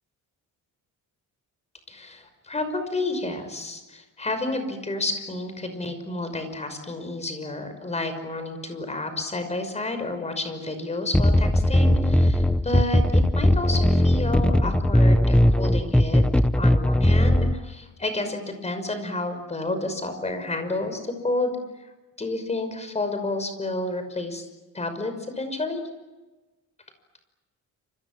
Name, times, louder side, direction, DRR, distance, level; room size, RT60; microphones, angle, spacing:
voice 1, 1.9-16.2 16.5-21.6 22.2-24.4 24.7-25.8, left 2 dB, 20° left, 8 dB, 5.8 m, -30 dB
sound 1, 11.1-17.5, left 1 dB, 5° left, 0.9 m, -19 dB
29.0 x 27.5 x 7.5 m, 1.2 s
cardioid pair, 145°, 32 cm